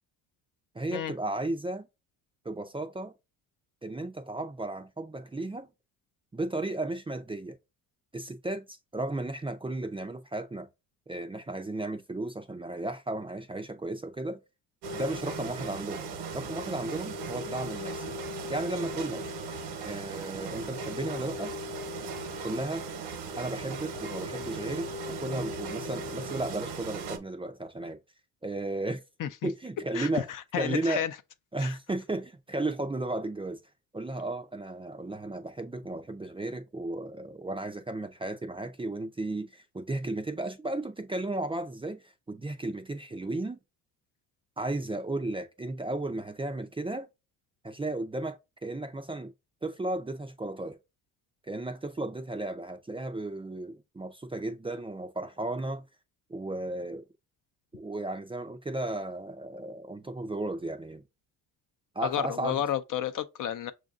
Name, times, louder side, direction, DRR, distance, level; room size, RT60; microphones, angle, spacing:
voice 1, 0.7-1.9 2.4-3.1 3.8-5.7 6.3-7.6 8.1-10.7 11.1-14.4 14.9-16.1 16.3-18.1 18.5-19.2 19.8-21.5 22.4-22.9 23.4-28.0 28.4-29.0 29.4-30.3 30.6-31.0 31.5-33.6 33.9-43.6 44.6-47.1 47.6-49.3 49.6-50.8 51.5-55.8 56.3-57.0 57.7-61.0 61.9-62.6, right 2 dB, 15° right, 0.5 m, -34 dB
sound 1, 14.8-27.2, right 2 dB, 70° right, 1.0 m, -37 dB
voice 2, 30.5-31.1 31.6-31.7 62.0-63.7, left 10 dB, 50° left, 0.6 m, -31 dB
6.1 x 2.6 x 2.4 m
cardioid pair, 95°, 42 cm